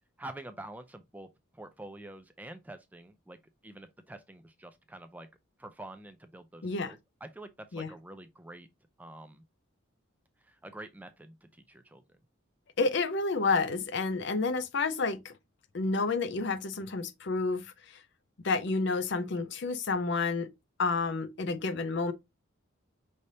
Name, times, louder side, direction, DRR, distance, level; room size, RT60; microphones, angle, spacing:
voice 1, 0.2-3.4 3.6-5.3 5.6-8.7 9.0-9.4 10.4-12.2, right 1 dB, 10° right, 0.3 m, -47 dB
voice 2, 6.6-7.0 7.7-7.9 12.8-15.4 15.7-18.0 18.4-20.5 20.8-22.1, left 3 dB, 55° left, 0.5 m, -30 dB
5.3 x 3.3 x 2.7 m
head